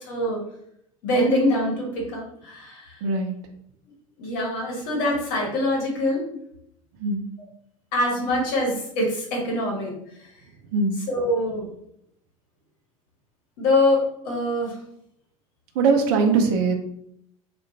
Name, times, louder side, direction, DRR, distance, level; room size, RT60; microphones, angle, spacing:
voice 1, 0.1-0.4 1.0-3.0 4.2-6.2 7.9-9.9 11.1-11.7 13.6-14.8, left 1 dB, 50° left, -1 dB, 0.9 m, -24 dB
voice 2, 3.0-3.3 7.0-7.2 10.7-11.0 15.8-16.7, right 4 dB, 50° right, 5 dB, 0.4 m, -21 dB
2.4 x 2.1 x 2.8 m, 0.73 s
figure-of-eight pair, 75°, 18 cm